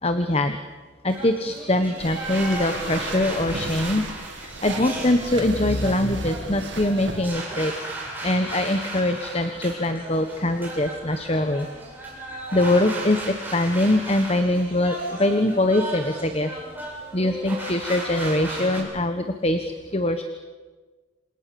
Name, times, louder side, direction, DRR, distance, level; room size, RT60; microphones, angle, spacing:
voice 1, 0.0-0.6 1.0-4.1 4.4-7.7 8.2-11.7 12.5-16.5 17.1-20.2, left 1 dB, 30° left, 8 dB, 1.2 m, -23 dB
sound 1, 1.1-18.8, right 2 dB, 10° right, 8.0 m, -35 dB
sound 2, 2.0-7.3, right 3 dB, 60° right, 2.2 m, -36 dB
27.5 x 27.5 x 7.0 m, 1.3 s
head